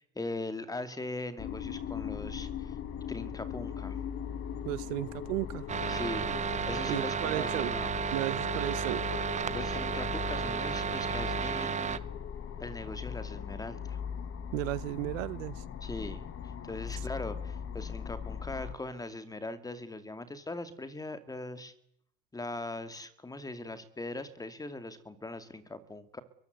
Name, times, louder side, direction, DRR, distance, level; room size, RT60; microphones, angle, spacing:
voice 1, 0.0-2.8 3.1-4.0 5.9-6.4 6.7-7.9 9.5-12.0 12.6-14.0 15.8-21.7 22.3-26.2, left 2 dB, 10° left, 2.3 m, -40 dB
sound 1, 1.4-18.8, left 8 dB, 35° left, 2.4 m, -39 dB
voice 2, 4.6-5.7 6.9-7.7 8.1-9.0 14.5-15.6, right 20 dB, 70° right, 1.1 m, -34 dB
sound 2, 5.7-12.0, right 7 dB, 20° right, 0.9 m, -33 dB
23.0 x 22.5 x 8.0 m
supercardioid pair, 130°, 40 cm